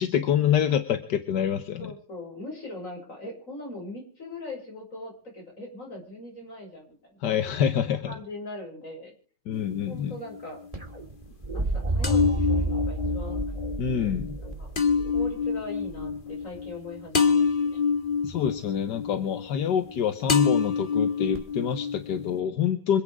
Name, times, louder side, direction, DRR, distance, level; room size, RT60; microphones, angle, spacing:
voice 1, 0.0-1.9 7.2-8.1 9.5-10.1 13.8-14.4 18.2-23.0, left 9 dB, 80° left, 9 dB, 1.7 m, -26 dB
voice 2, 1.8-7.2 8.1-9.1 9.9-10.7 11.5-13.4 14.6-14.7 15.1-17.8, left 1 dB, 45° left, 0 dB, 6.5 m, -40 dB
sound 1, 9.5-10.4 12.0-20.0 20.3-22.4, left 5 dB, 30° left, 1.6 m, -27 dB
sound 2, 10.7-16.7 18.3-18.8 21.3-21.4, right 2 dB, 20° right, 2.7 m, -31 dB
26.5 x 8.8 x 4.9 m, 0.42 s
omnidirectional pair, 1.8 m